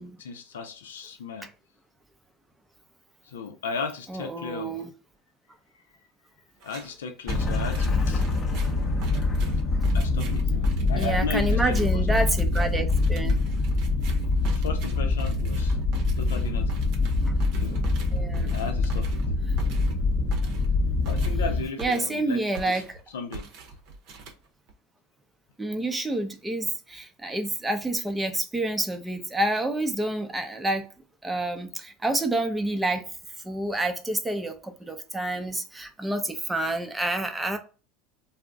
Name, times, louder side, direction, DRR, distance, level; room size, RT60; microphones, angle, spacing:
voice 1, 0.0-1.5 3.3-4.7 6.6-8.2 9.9-12.2 14.5-15.8 16.2-16.8 17.6-17.8 18.5-19.1 21.1-22.4 22.7-22.8 23.1-23.5, left 5 dB, 90° left, 0.4 m, -35 dB
voice 2, 4.1-4.9 11.0-13.4 17.2-17.3 18.1-18.6 21.8-23.0 25.6-30.9 31.2-33.1 33.4-37.6, right 2 dB, 10° right, 0.5 m, -28 dB
sound 1, 6.6-6.9 7.3-22.3 22.5-23.0 23.3-24.7, right 3 dB, 60° right, 0.6 m, -42 dB
sound 2, 7.3-21.6, left 3 dB, 30° left, 0.7 m, -25 dB
2.4 x 2.0 x 3.5 m
hypercardioid pair, 90°, 0 cm